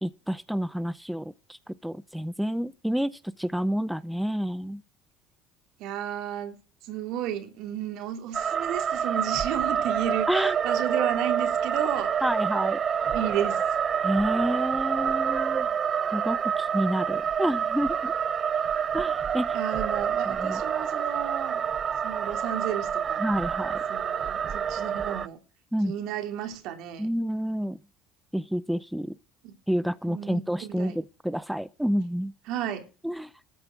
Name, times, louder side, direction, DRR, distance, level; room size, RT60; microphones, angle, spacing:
voice 1, 0.0-4.8 10.3-10.6 12.2-12.8 14.0-15.7 16.1-18.1 18.9-19.6 20.3-20.6 23.2-23.8 25.7-25.9 27.0-27.8 28.3-29.1 29.7-32.3 33.0-33.3, equal, ahead, 0.6 m, -29 dB
voice 2, 5.8-12.1 13.1-13.6 19.5-21.6 22.0-23.2 23.9-25.4 25.8-27.1 29.4-29.5 30.1-31.0 32.5-32.9, right 10 dB, 70° right, 3.1 m, -33 dB
sound 1, 8.3-25.3, right 7 dB, 40° right, 0.7 m, -27 dB
13.5 x 8.0 x 6.0 m
supercardioid pair, 90°, 0 cm